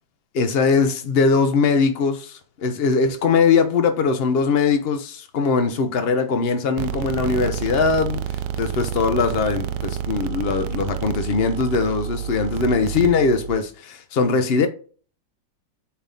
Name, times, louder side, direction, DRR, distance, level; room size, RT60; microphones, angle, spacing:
voice 1, 0.3-14.7, left 5 dB, 65° left, 0.5 m, -21 dB
sound 1, 6.8-13.6, right 10 dB, 75° right, 1.2 m, -29 dB
8.4 x 3.5 x 3.9 m
omnidirectional pair, 2.0 m